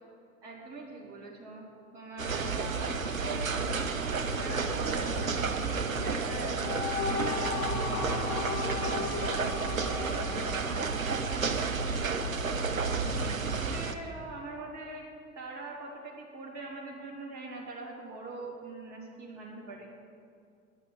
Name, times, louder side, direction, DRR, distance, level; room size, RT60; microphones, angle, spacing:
voice 1, 0.4-8.2 8.6-11.0 11.5-12.1 12.7-15.0 15.3-19.9, right 2 dB, 45° right, -3 dB, 2.9 m, -43 dB
sound 1, 2.2-13.9, right 4 dB, 85° right, 0.7 m, -31 dB
sound 2, 6.3-11.7, left 6 dB, 45° left, 1.0 m, -36 dB
9.7 x 6.4 x 8.8 m, 2.3 s
figure-of-eight pair, 75°, 40 cm